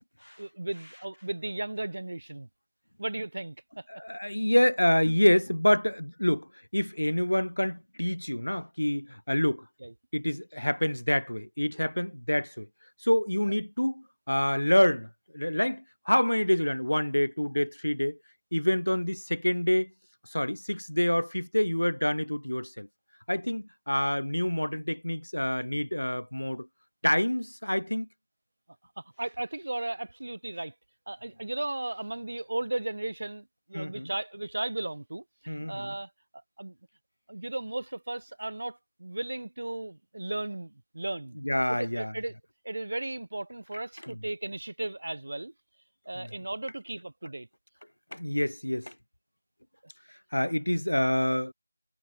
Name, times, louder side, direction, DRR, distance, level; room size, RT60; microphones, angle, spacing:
voice 1, 0.4-2.5 3.0-3.9 9.8-9.9 29.0-30.7 31.1-36.1 36.6-36.8 37.3-41.4 41.7-42.3 42.6-45.5 46.1-47.5, right 2 dB, 55° right, 7.9 m, -35 dB
voice 2, 3.9-9.6 10.1-12.7 13.0-18.2 18.5-19.9 20.3-22.9 23.3-26.7 27.0-28.1 33.7-34.1 35.5-35.9 41.4-42.1 44.0-44.2 46.2-46.3 48.1-48.9 50.3-51.5, left 1 dB, 80° left, 4.2 m, -27 dB
figure-of-eight pair, 170°, 0 cm